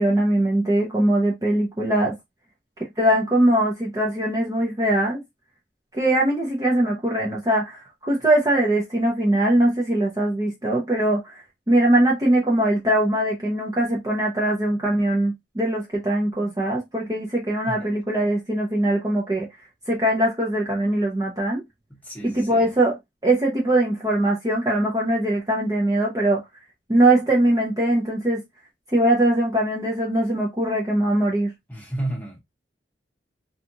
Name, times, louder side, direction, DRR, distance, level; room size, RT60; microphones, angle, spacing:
voice 1, 0.0-2.1 3.0-5.2 5.9-11.4 11.7-19.5 19.9-21.6 22.2-23.0 23.2-26.4 26.9-28.4 28.9-31.5, right 1 dB, 20° right, 0.5 m, -21 dB
voice 2, 21.9-22.7 31.7-32.4, right 1 dB, 10° left, 0.9 m, -32 dB
2.8 x 2.3 x 2.5 m
head